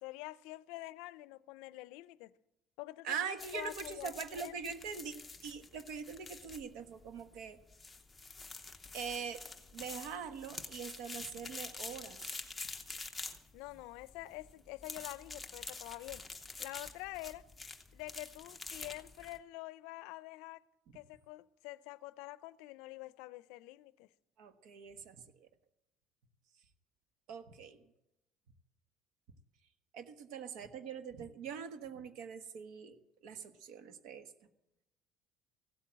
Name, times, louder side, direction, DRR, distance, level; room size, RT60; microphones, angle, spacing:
voice 1, 0.0-2.3 2.8-3.2 3.5-4.1 4.4-4.5 13.5-16.2 16.6-17.5 17.9-20.6 20.9-24.1, left 19 dB, 80° left, 0.5 m, -47 dB
voice 2, 3.0-5.1 5.4-7.6 8.9-9.4 9.7-12.2 24.4-25.5 27.3-27.8 29.9-33.0 33.2-34.3, right 6 dB, 60° right, 1.3 m, -43 dB
sound 1, 3.4-19.4, left 3 dB, 10° left, 0.8 m, -47 dB
15.5 x 8.6 x 7.5 m
cardioid pair, 180°, 0 cm